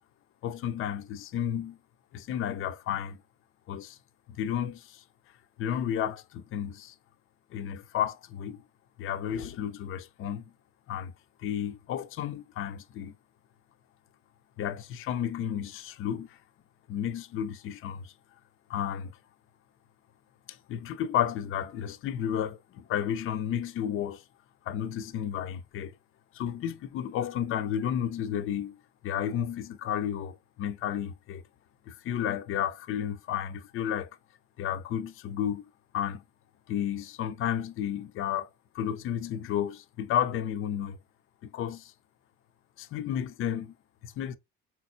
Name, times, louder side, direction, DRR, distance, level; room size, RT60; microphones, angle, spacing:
voice 1, 0.4-1.8 2.1-3.2 3.7-4.0 4.4-5.0 5.6-6.9 7.5-8.6 9.0-10.4 10.9-11.1 11.4-13.1 14.6-16.4 16.9-18.1 18.7-19.1 20.5-24.2 24.7-25.9 26.3-28.8 29.0-31.4 31.9-34.1 34.6-35.7 35.9-36.2 36.7-38.5 38.7-41.0 41.4-41.9 42.8-43.7 44.0-44.4, left 9 dB, 30° left, 0.4 m, -32 dB
4.4 x 3.9 x 2.5 m
figure-of-eight pair, 55°, 47 cm